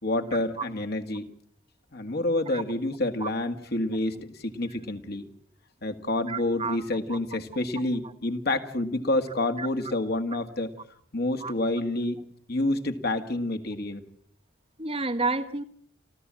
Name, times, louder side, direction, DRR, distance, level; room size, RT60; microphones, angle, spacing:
voice 1, 0.0-1.3 1.9-5.3 5.8-10.7 11.1-12.2 12.5-14.0, left 2 dB, 55° left, 7 dB, 1.9 m, -28 dB
voice 2, 6.3-6.8 7.1-7.2 9.6-9.7 11.4-11.5 14.8-15.6, right 3 dB, 30° right, 6 dB, 1.4 m, -30 dB
29.0 x 13.0 x 7.6 m, 0.62 s
head